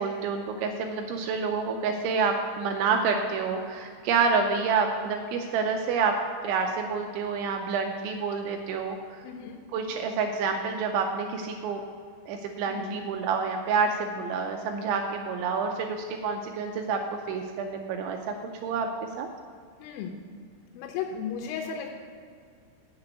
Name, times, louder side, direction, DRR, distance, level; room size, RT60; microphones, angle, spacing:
voice 1, 0.0-6.2 6.4-9.0 9.7-11.8 12.3-17.0 17.3-18.3 18.6-19.3, right 5 dB, 85° right, 3 dB, 2.8 m, -28 dB
voice 2, 9.2-9.6 12.7-13.0 19.8-20.2 20.7-21.9, left 7 dB, 85° left, 2 dB, 3.3 m, -35 dB
8.3 x 6.8 x 7.9 m, 2.2 s
omnidirectional pair, 5.7 m